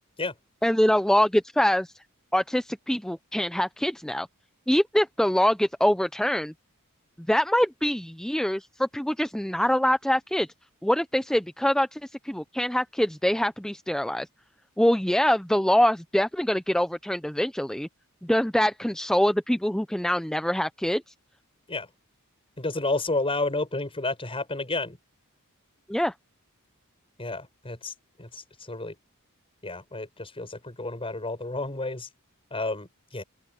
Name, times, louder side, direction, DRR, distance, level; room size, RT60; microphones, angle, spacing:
voice 1, 0.6-1.9 2.3-4.3 4.7-6.5 7.3-10.5 10.8-14.3 14.8-17.9 18.2-21.0 25.9-26.1, equal, 5° left, 0.5 m, -24 dB
voice 2, 22.6-25.0 27.2-27.9 28.2-28.9 29.6-32.1 32.5-33.2, left 2 dB, 25° left, 5.8 m, -31 dB
open air
head